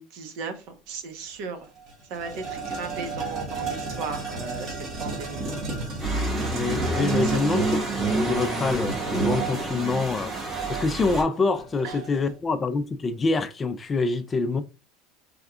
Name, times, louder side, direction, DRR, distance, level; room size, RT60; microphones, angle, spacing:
voice 1, 0.0-1.7 2.1-5.6 7.2-7.3 11.8-12.0, right 4 dB, 65° right, 1.0 m, -36 dB
sound 1, 1.2-1.3 1.6-12.3, right 3 dB, 45° right, 1.6 m, -34 dB
sound 2, 6.0-11.2, right 3 dB, 20° right, 2.2 m, -28 dB
voice 2, 6.5-10.3 10.7-14.6, left 3 dB, 20° left, 0.4 m, -26 dB
4.6 x 3.4 x 2.4 m
supercardioid pair, 130°, 0 cm